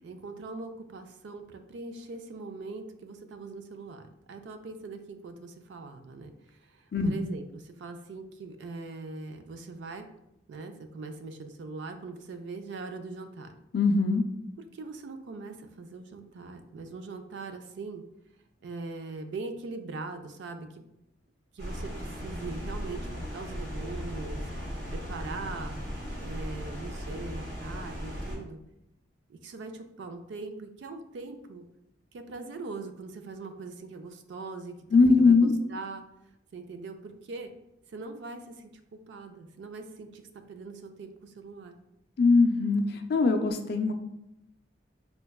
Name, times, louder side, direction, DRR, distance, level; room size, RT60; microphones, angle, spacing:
voice 1, 0.0-10.1 10.5-13.6 14.7-18.0 18.6-20.8 21.5-24.5 24.9-25.9 26.2-28.6 29.3-31.7 32.1-36.0 36.5-37.5 37.9-41.8, right 3 dB, 70° right, 8 dB, 0.3 m, -41 dB
voice 2, 13.7-14.2 34.9-35.5 42.2-43.9, left 4 dB, 55° left, 6 dB, 0.3 m, -21 dB
sound 1, 21.6-28.4, equal, 85° right, 1.4 m, -37 dB
4.4 x 2.2 x 2.2 m, 0.85 s
head